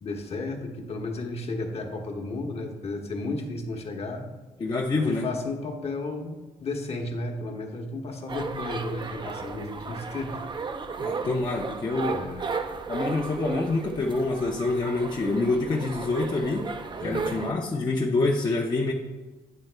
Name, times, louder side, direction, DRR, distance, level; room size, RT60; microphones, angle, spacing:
voice 1, 0.0-4.3 4.9-10.4 12.1-12.5 17.0-17.3, left 2 dB, 50° left, 3 dB, 1.0 m, -33 dB
voice 2, 4.6-5.2 11.0-12.2 12.9-16.7 17.0-18.9, left 3 dB, 30° left, -1 dB, 0.6 m, -26 dB
sound 1, 8.3-17.5, right 4 dB, 35° right, 0.5 m, -34 dB
9.1 x 3.5 x 3.3 m, 1.2 s
supercardioid pair, 65°, 14 cm